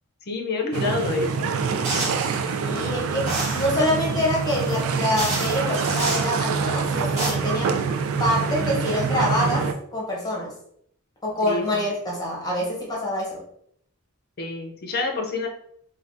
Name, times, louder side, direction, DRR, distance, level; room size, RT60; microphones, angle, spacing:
voice 1, 0.3-1.5 11.4-11.8 14.4-15.5, left 3 dB, 45° left, 2 dB, 0.5 m, -27 dB
sound 1, 0.7-9.7, right 5 dB, 70° right, 0.3 m, -26 dB
sound 2, 1.8-2.3 3.3-3.7 4.7-4.8 5.2-6.3 6.9-7.3, right 2 dB, 30° right, 1.1 m, -28 dB
voice 2, 2.6-7.8 8.2-10.5 11.2-13.4, left 1 dB, 15° left, -4 dB, 0.8 m, -26 dB
3.3 x 2.2 x 2.6 m, 0.69 s
head